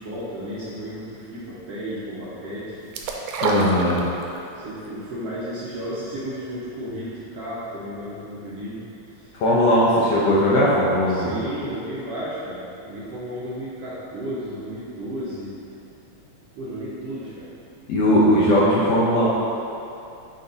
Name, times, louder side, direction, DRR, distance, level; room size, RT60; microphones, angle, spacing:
voice 1, 0.0-2.8 4.5-8.8 9.1-9.4 11.1-15.5 16.5-17.5, equal, 70° right, -9 dB, 1.6 m, -33 dB
sound 1, 2.9-4.5 4.8-4.9, right 4 dB, 85° right, 2.0 m, -26 dB
voice 2, 3.4-4.0 9.3-11.3 17.9-19.3, equal, 70° left, -7 dB, 1.6 m, -18 dB
6.3 x 4.1 x 3.9 m, 2.7 s
omnidirectional pair, 3.5 m